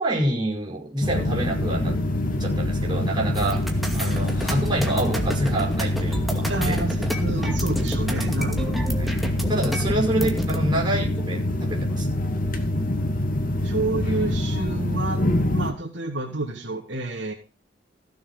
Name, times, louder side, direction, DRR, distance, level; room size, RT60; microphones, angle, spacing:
voice 1, 0.0-2.0 2.4-3.7 3.9-6.8 7.8-7.9 8.9-9.1 9.5-12.1, right 1 dB, 25° right, -2 dB, 5.5 m, -27 dB
sound 1, 1.0-15.7, left 1 dB, 50° left, 2.3 m, -25 dB
sound 2, 3.3-10.6, equal, ahead, 2.3 m, -31 dB
voice 2, 6.5-8.7 13.6-15.2 15.5-17.3, right 2 dB, 80° right, 1 dB, 3.2 m, -29 dB
16.0 x 7.0 x 5.7 m, 0.33 s
head